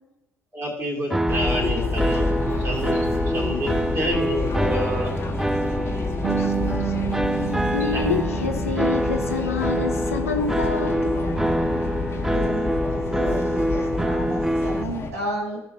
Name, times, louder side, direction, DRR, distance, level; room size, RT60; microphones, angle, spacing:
voice 1, 0.5-2.3 2.6-5.1 6.8-6.9 7.9-8.0, equal, 35° right, -2 dB, 3.1 m, -29 dB
sound 1, 1.1-14.8, equal, 5° right, 0.4 m, -26 dB
sound 2, 1.3-15.1, left 3 dB, 35° left, 1.5 m, -28 dB
Bass guitar, 6.2-12.5, right 11 dB, 55° right, 0.7 m, -33 dB
voice 2, 6.4-6.9 7.7-11.1, left 5 dB, 85° left, 6 dB, 0.7 m, -28 dB
voice 3, 12.3-15.6, right 1 dB, 80° right, -3 dB, 1.9 m, -32 dB
15.5 x 5.4 x 2.8 m, 0.96 s
figure-of-eight pair, 50°, 7 cm